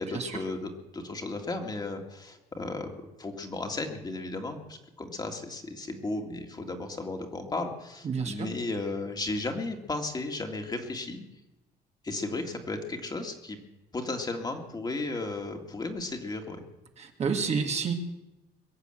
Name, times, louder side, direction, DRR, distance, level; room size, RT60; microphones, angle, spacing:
voice 1, 0.0-2.9 3.2-11.2 12.0-13.6 13.9-16.7, left 2 dB, 25° left, 3 dB, 2.2 m, -34 dB
voice 2, 8.0-8.5 17.0-17.9, right 5 dB, 40° right, 4 dB, 2.0 m, -29 dB
22.5 x 8.2 x 7.8 m, 1.0 s
cardioid pair, 110°, 17 cm